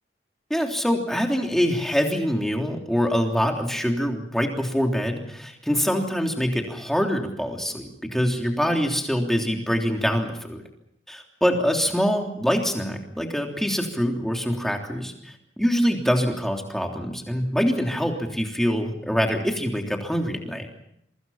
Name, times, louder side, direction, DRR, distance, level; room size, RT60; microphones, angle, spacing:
voice 1, 0.5-10.6 11.1-20.7, equal, ahead, 2 dB, 3.3 m, -24 dB
28.0 x 24.0 x 5.8 m, 0.74 s
head